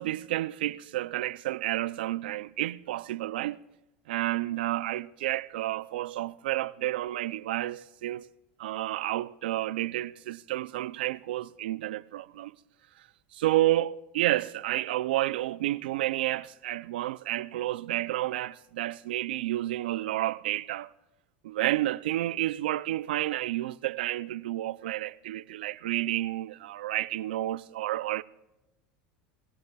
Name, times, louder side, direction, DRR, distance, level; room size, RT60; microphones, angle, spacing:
voice 1, 0.0-3.6 4.1-8.3 8.6-12.6 13.3-20.9 21.4-28.2, right 15 dB, 85° right, 0.4 m, -30 dB
26.0 x 16.0 x 2.3 m
supercardioid pair, 105°, 5 cm